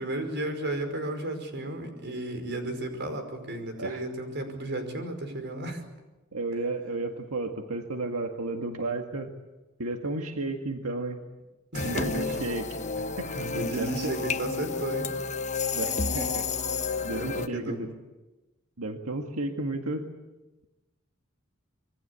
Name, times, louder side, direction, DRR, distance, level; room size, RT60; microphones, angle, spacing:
voice 1, 0.0-5.8 11.7-12.4 13.3-15.2 17.1-17.8, right 1 dB, 55° right, 6 dB, 5.2 m, -33 dB
voice 2, 6.3-9.3 9.8-11.2 11.8-12.8 13.2-13.4 13.8-14.1 15.7-16.5 17.0-17.9 18.8-20.1, right 2 dB, 90° right, 4 dB, 1.9 m, -33 dB
sound 1, 11.7-17.5, left 4 dB, 35° left, 1.1 m, -31 dB
26.5 x 23.5 x 8.4 m, 1.1 s
head